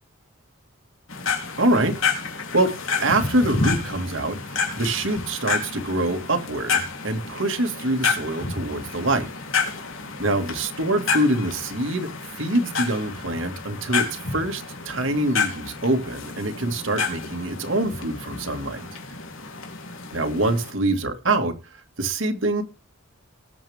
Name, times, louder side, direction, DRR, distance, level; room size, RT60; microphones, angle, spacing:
sound 1, 1.1-20.7, left 4 dB, 85° left, 3.3 m, -30 dB
voice 1, 1.6-1.9 2.5-2.7 3.0-4.4 4.8-9.3 10.2-12.1 12.4-18.9 20.1-21.5 22.0-22.6, right 1 dB, 75° right, 2.1 m, -24 dB
19.0 x 8.0 x 3.6 m
head